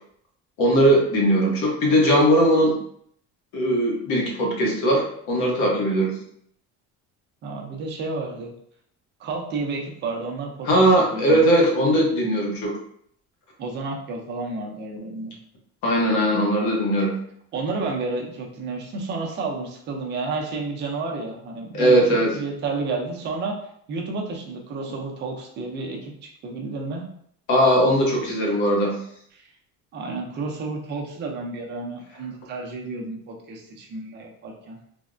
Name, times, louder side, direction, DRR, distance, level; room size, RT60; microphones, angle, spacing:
voice 1, 0.6-2.7 3.5-6.1 10.6-12.7 15.8-17.1 21.7-22.4 27.5-28.9, equal, 65° left, -1 dB, 0.8 m, -19 dB
voice 2, 7.4-8.5 9.2-10.9 11.1-11.4 13.6-15.3 17.5-23.6 23.9-27.1 29.3-29.5 29.9-34.8, right 3 dB, 35° right, 0 dB, 0.5 m, -31 dB
3.3 x 2.1 x 2.5 m, 0.66 s
cardioid pair, 175°, 32 cm